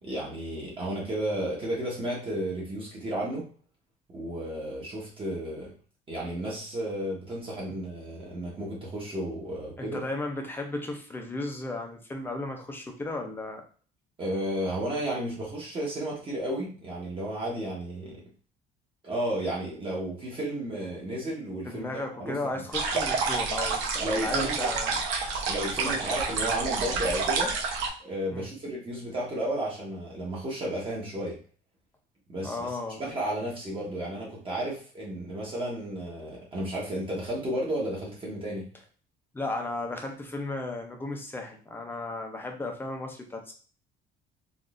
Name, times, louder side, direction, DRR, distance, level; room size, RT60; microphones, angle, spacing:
voice 1, 0.0-3.4 4.1-5.7 6.1-10.0 14.2-18.2 19.0-22.4 24.0-24.7 25.5-27.5 28.0-31.4 32.3-32.7 33.0-38.6, right 1 dB, 25° right, -4 dB, 1.1 m, -33 dB
voice 2, 9.8-13.6 21.6-25.0 25.6-26.1 28.3-28.5 32.4-33.0 39.3-43.5, left 2 dB, 10° left, 3 dB, 0.6 m, -35 dB
sound 1, 22.7-27.9, right 4 dB, 85° right, 0.9 m, -29 dB
3.8 x 2.5 x 2.5 m, 0.40 s
cardioid pair, 150°, 20 cm